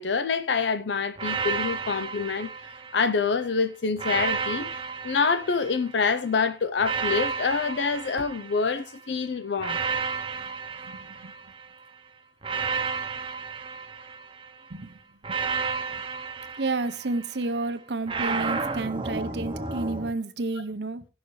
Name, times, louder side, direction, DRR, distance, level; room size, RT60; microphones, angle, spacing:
voice 1, 0.0-2.5 2.9-4.7 5.0-9.8, left 5 dB, 90° left, 0.5 m, -26 dB
sound 1, 1.2-3.3 4.0-6.1 6.8-9.0 9.6-11.8 12.4-14.6 15.2-17.4 18.1-20.1, right 5 dB, 30° right, 0.8 m, -32 dB
voice 2, 10.8-11.3 14.7-15.0 15.3-15.4 16.6-21.1, right 3 dB, 80° right, 0.8 m, -31 dB
17.0 x 6.4 x 3.2 m
head